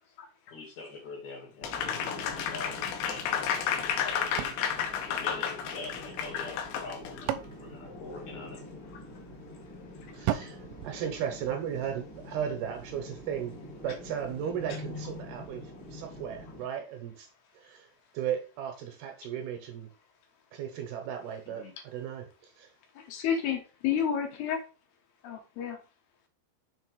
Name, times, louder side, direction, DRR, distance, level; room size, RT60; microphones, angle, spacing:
voice 1, 0.5-4.5 5.1-8.9 21.5-21.7, left 3 dB, 50° left, -1 dB, 3.1 m, -44 dB
Applause, 1.6-7.2, left 8 dB, 90° left, 3.0 m, -32 dB
sound 1, 1.6-16.6, left 1 dB, 15° left, 0.7 m, -45 dB
voice 2, 2.1-2.5 10.1-10.3 23.0-24.6 25.2-25.8, left 8 dB, 70° left, 3 dB, 3.0 m, -31 dB
sound 2, 4.4-5.9 6.8-8.8 10.3-11.9, right 12 dB, 90° right, 2.8 m, -37 dB
voice 3, 10.1-10.6 10.8-13.6 13.8-15.6 15.9-17.3 17.6-17.9 18.1-19.9 20.5-21.6 21.9-22.7, right 9 dB, 75° right, 5 dB, 2.7 m, -35 dB
6.5 x 4.4 x 4.8 m, 0.33 s
omnidirectional pair, 5.0 m